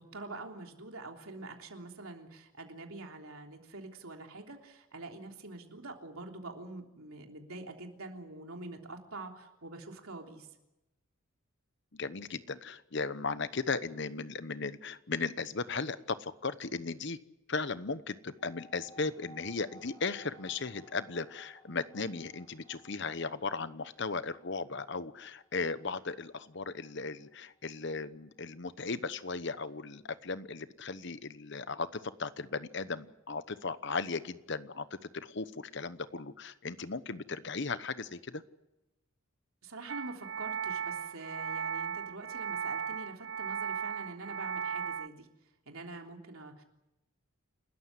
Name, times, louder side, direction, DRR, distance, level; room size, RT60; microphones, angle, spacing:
voice 1, 0.0-10.5 39.6-45.3 45.7-46.6, right 2 dB, 85° right, 3 dB, 3.4 m, -45 dB
voice 2, 11.9-17.2 17.5-38.4, left 4 dB, 55° left, 14 dB, 1.0 m, -36 dB
sound 1, 18.4-29.3, equal, 20° left, 4.6 m, -60 dB
sound 2, 39.9-45.1, right 6 dB, 60° right, 0.7 m, -36 dB
29.0 x 13.5 x 9.8 m, 0.96 s
head